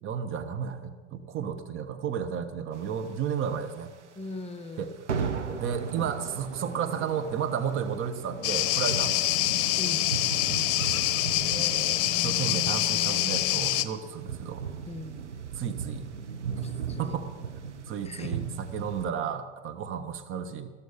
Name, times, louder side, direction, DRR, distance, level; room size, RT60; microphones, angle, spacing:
voice 1, 0.0-3.9 4.8-4.9 5.6-9.3 11.5-14.6 15.5-16.1 16.6-16.7 17.0-17.3 17.9-20.7, right 7 dB, 35° right, 9 dB, 1.5 m, -33 dB
sound 1, 2.9-3.9 4.2-4.3 4.6-4.8 5.1-19.1, right 6 dB, 85° right, 1.3 m, -37 dB
voice 2, 4.2-4.9 9.8-10.1 14.9-15.3 16.6-17.2 18.0-18.4, left 2 dB, 20° left, 9 dB, 0.9 m, -40 dB
sound 2, 8.4-13.9, left 14 dB, 45° left, 1.0 m, -26 dB
14.5 x 13.5 x 5.5 m, 1.4 s
figure-of-eight pair, 90°, 34 cm